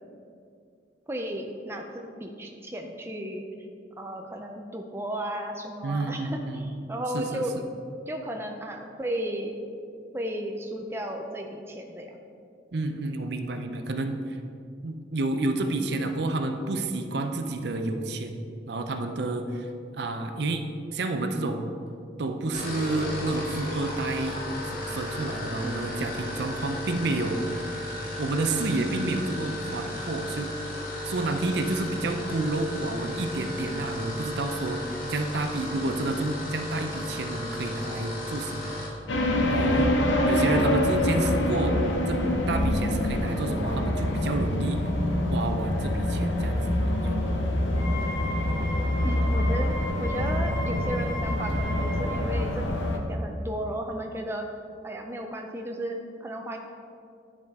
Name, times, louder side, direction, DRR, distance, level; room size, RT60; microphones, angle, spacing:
voice 1, 1.1-3.4 4.0-7.7 8.1-9.5 10.1-12.2 25.6-25.9 40.4-40.8 49.0-49.7 50.0-52.7 52.9-54.5 54.8-56.6, right 1 dB, 15° right, 2 dB, 0.5 m, -34 dB
voice 2, 5.8-6.7 7.1-7.4 12.7-14.4 14.8-19.7 19.9-20.6 20.9-21.6 22.2-24.4 24.7-27.4 28.2-30.5 31.0-38.8 39.5-39.9 40.3-41.8 42.1-42.2 42.5-44.8 45.3-47.3, right 2 dB, 65° right, 6 dB, 0.5 m, -30 dB
sound 1, 22.4-39.0, left 1 dB, 50° left, 1.4 m, -35 dB
sound 2, 39.1-53.0, left 1 dB, 90° left, 0.8 m, -25 dB
Wind instrument woodwind instrument, 47.7-52.2, equal, 25° left, 1.1 m, -37 dB
10.5 x 5.0 x 3.6 m, 2.4 s
head